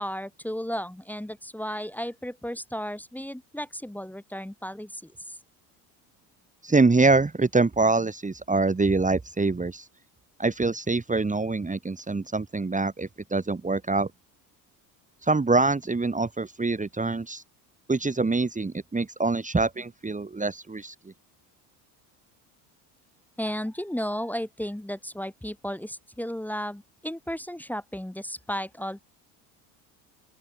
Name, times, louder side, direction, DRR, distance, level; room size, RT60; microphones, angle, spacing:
voice 1, 0.0-5.4 23.4-29.0, equal, 5° left, 2.7 m, -34 dB
voice 2, 6.6-9.9 10.4-14.1 15.2-17.4 17.9-20.9, right 3 dB, 15° right, 2.5 m, -25 dB
open air
hypercardioid pair, 75°, 48 cm